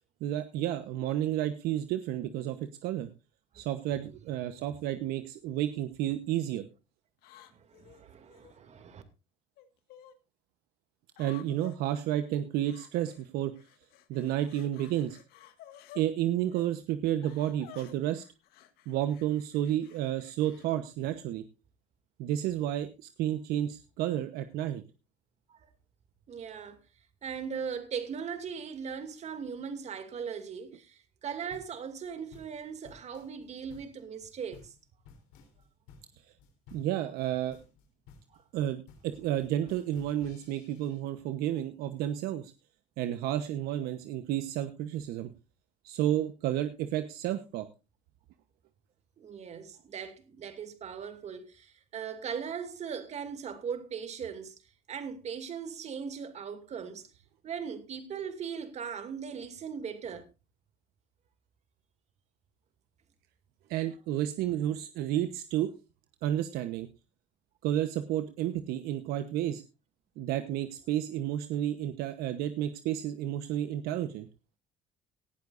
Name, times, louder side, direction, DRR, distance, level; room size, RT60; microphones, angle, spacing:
voice 1, 0.2-3.1 3.5-6.6 11.2-13.5 14.1-15.2 15.9-18.2 18.9-21.4 22.2-24.8 36.7-37.6 38.5-42.5 43.0-45.3 45.8-47.7 63.7-65.7 66.2-66.9 67.6-69.6 70.2-74.3, right 12 dB, 70° right, 1.1 m, -31 dB
sound 1, 4.6-4.9 5.6-6.1 7.2-8.6 9.6-10.1 11.1-11.8 12.6-13.3 13.5-16.1 16.5-16.7 17.2-20.7, left 13 dB, 70° left, 1.8 m, -54 dB
voice 2, 7.5-9.0 25.5-25.7 26.3-26.8 27.2-34.7 38.3-38.4 49.2-54.5 54.9-57.1 57.4-60.3, right 7 dB, 45° right, 2.5 m, -39 dB
sound 2, 31.5-41.0, left 5 dB, 85° left, 3.7 m, -56 dB
18.0 x 12.0 x 2.6 m
supercardioid pair, 100°, 16 cm